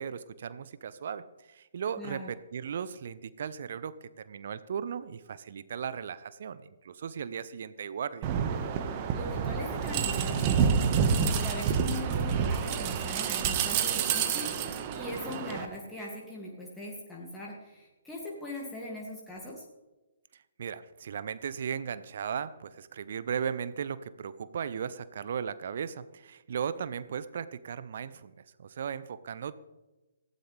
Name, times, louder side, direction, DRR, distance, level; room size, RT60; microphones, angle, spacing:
voice 1, 0.0-8.3 20.6-28.3 28.6-29.5, right 7 dB, 50° right, 15 dB, 0.7 m, -36 dB
voice 2, 2.0-2.3 9.1-19.6, left 1 dB, 5° left, -4 dB, 2.4 m, -40 dB
sound 1, 8.2-15.7, right 7 dB, 30° right, 1.5 m, -28 dB
19.0 x 15.5 x 3.4 m, 1.1 s
figure-of-eight pair, 130°, 0 cm